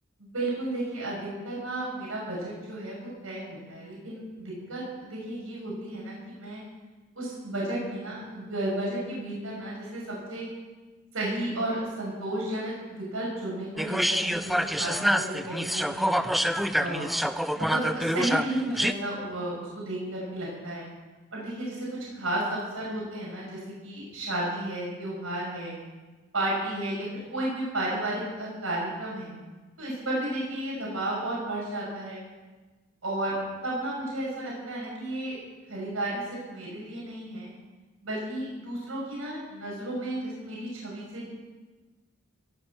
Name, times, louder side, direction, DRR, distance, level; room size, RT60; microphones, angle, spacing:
voice 1, 0.2-6.6 7.2-10.5 11.1-16.1 16.8-17.1 17.5-20.9 21.3-25.8 26.3-29.3 29.8-32.2 33.0-35.3 35.7-37.5 38.0-41.3, right 1 dB, 90° right, -4 dB, 6.1 m, -33 dB
sound 1, 13.8-18.9, equal, ahead, 0.3 m, -27 dB
16.5 x 8.2 x 7.9 m, 1.3 s
head